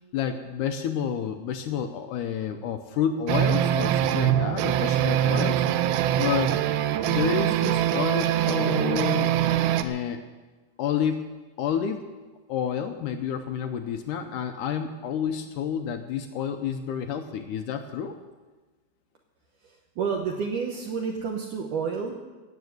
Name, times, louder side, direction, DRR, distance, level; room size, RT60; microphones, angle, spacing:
voice 1, 0.1-5.6 6.2-6.6 7.0-9.3 9.8-10.2 10.8-11.3 11.6-12.0 12.5-18.2, left 8 dB, 80° left, 7 dB, 1.9 m, -29 dB
sound 1, 3.3-9.8, right 11 dB, 85° right, 2.5 m, -23 dB
voice 2, 20.0-22.2, right 5 dB, 70° right, 1 dB, 2.3 m, -29 dB
16.5 x 8.1 x 7.9 m, 1.3 s
omnidirectional pair, 4.3 m